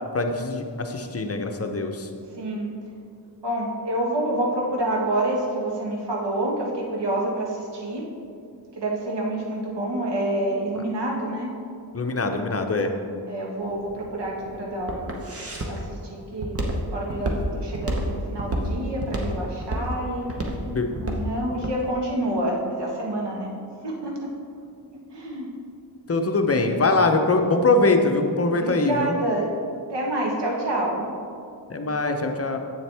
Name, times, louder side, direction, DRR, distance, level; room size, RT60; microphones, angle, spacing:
voice 1, 0.1-2.1 11.9-12.9 20.6-20.9 26.1-29.2 31.7-32.6, left 3 dB, 35° left, 5 dB, 0.6 m, -22 dB
voice 2, 2.4-2.7 3.4-8.1 8.8-11.5 13.3-15.1 15.6-16.6 16.9-20.3 20.9-23.5 23.8-24.3 25.1-25.5 28.5-29.5 29.9-31.1, right 1 dB, 90° right, -2 dB, 1.4 m, -28 dB
Walk footsteps, 13.6-21.8, right 1 dB, 35° right, 1.0 m, -29 dB
7.9 x 7.2 x 3.4 m, 2.4 s
wide cardioid pair, 95°, 41 cm